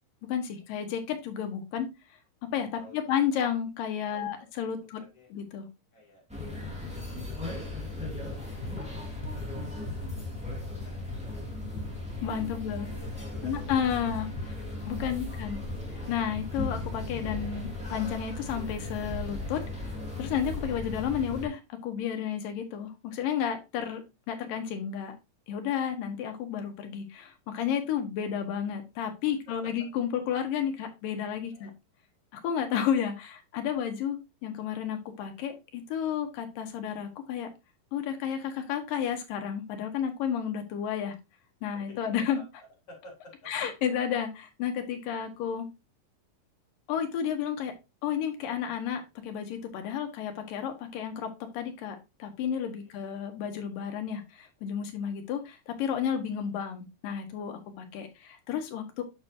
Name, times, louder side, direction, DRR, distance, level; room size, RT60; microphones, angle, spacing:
voice 1, 0.3-1.9 2.5-5.0 5.3-5.7 12.2-12.9 13.4-14.3 14.9-15.6 16.1-19.6 20.2-24.0 24.3-25.1 25.5-31.7 32.3-37.5 37.9-41.1 41.6-42.4 43.4-45.7 46.9-47.7 48.0-59.0, left 8 dB, 85° left, 5 dB, 2.9 m, -32 dB
voice 2, 2.8-3.2 4.1-4.5 5.0-5.3 5.9-6.2 6.5-6.6 7.1-7.2 7.6-7.7 8.8-8.9 9.2-10.1 10.7-11.6 12.4-15.4 31.5-31.7 41.7-41.8 42.3-42.4 42.9-43.5 52.8-52.9, left 1 dB, 45° left, -2 dB, 4.4 m, -53 dB
sound 1, 6.3-21.5, left 2 dB, 5° right, 1.6 m, -37 dB
Run, 8.1-17.2, equal, 65° left, 1.5 m, -43 dB
8.1 x 6.3 x 2.8 m, 0.25 s
omnidirectional pair, 3.9 m